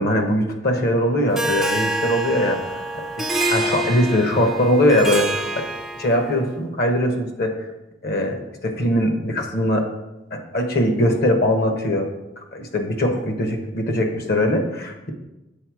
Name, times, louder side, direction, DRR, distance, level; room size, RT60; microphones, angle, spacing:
voice 1, 0.0-2.6 3.5-5.6 6.0-7.5 8.0-9.9 10.3-12.1 12.5-15.1, left 1 dB, 50° left, 4 dB, 1.0 m, -21 dB
Harp, 1.4-6.4, right 2 dB, ahead, 0.4 m, -26 dB
7.6 x 4.1 x 4.7 m, 0.99 s
head